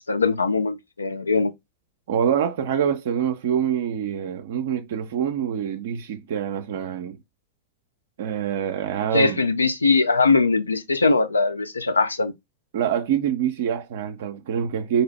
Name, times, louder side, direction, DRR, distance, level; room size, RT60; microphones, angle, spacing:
voice 1, 0.0-1.5 9.1-12.3, left 4 dB, 80° left, 0.4 m, -21 dB
voice 2, 2.1-7.2 8.2-9.4 12.7-15.0, right 8 dB, 60° right, 0.4 m, -25 dB
4.0 x 2.7 x 3.1 m
figure-of-eight pair, 90°, 0 cm